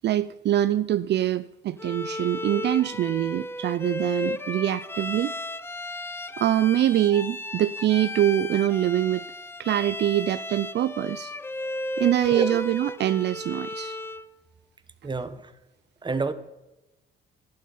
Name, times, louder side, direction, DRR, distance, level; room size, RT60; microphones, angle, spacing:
voice 1, 0.0-5.3 6.4-9.2 9.6-11.3 12.0-14.0, right 12 dB, 60° right, 14 dB, 0.4 m, -24 dB
Bowed string instrument, 1.8-14.3, left 1 dB, 10° left, 0.5 m, -34 dB
voice 2, 12.3-12.6 15.0-15.5 16.0-16.3, right 3 dB, 25° right, 12 dB, 1.0 m, -29 dB
11.5 x 10.5 x 5.5 m, 1.0 s
cardioid pair, 90°, 20 cm